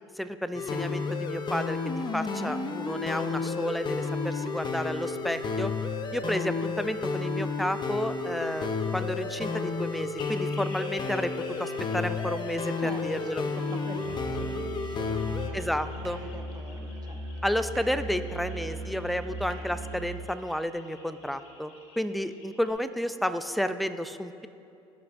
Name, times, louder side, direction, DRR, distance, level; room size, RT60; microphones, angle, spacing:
voice 1, 0.2-5.7 6.1-11.3 11.6-13.4 15.5-16.2 17.4-24.5, equal, ahead, 11 dB, 0.4 m, -31 dB
sound 1, 0.5-15.5, left 4 dB, 35° left, 0.8 m, -31 dB
sound 2, 10.2-22.7, left 3 dB, 65° left, 2.1 m, -51 dB
voice 2, 12.8-17.2, right 4 dB, 30° right, 4 dB, 1.1 m, -45 dB
Musical instrument, 14.0-20.3, right 1 dB, 85° right, 0.9 m, -38 dB
15.5 x 6.0 x 2.6 m, 2.7 s
hypercardioid pair, 75°, 14 cm